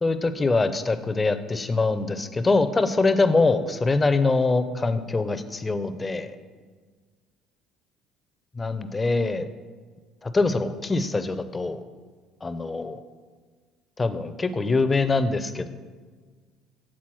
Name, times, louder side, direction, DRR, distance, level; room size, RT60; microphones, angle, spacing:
voice 1, 0.0-6.4 8.5-9.5 10.2-11.8 12.4-13.0 14.0-15.7, left 3 dB, 25° left, 11 dB, 0.5 m, -24 dB
7.5 x 4.0 x 6.2 m, 1.5 s
supercardioid pair, 75°, 0 cm